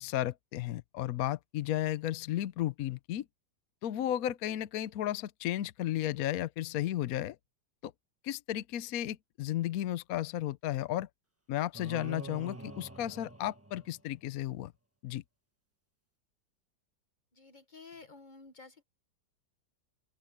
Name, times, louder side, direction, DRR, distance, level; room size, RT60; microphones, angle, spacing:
voice 1, 0.0-3.2 3.8-7.4 7.8-7.9 8.2-11.1 11.5-14.7 15.0-15.2, left 13 dB, 65° left, 1.0 m, -34 dB
sound 1, 11.7-14.3, right 2 dB, 10° right, 1.3 m, -46 dB
voice 2, 17.3-18.8, left 4 dB, 30° left, 1.3 m, -52 dB
open air
omnidirectional pair, 1.9 m